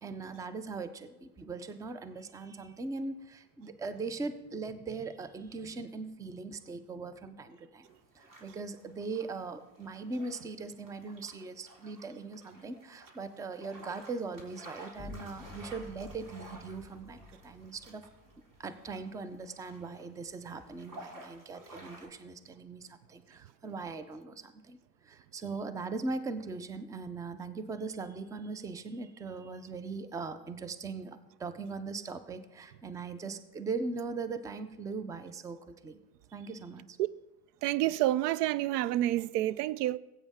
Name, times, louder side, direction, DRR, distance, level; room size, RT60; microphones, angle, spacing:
voice 1, 0.0-7.9 8.1-18.1 18.6-24.8 25.0-36.0 36.3-37.0, right 4 dB, 10° right, 0.4 m, -40 dB
sound 1, 7.9-22.1, right 1 dB, 40° right, 3.8 m, -53 dB
sound 2, 14.9-20.5, left 2 dB, 15° left, 2.6 m, -52 dB
voice 2, 37.6-40.0, right 14 dB, 75° right, 0.5 m, -28 dB
15.5 x 8.3 x 3.6 m
supercardioid pair, 105°, 48 cm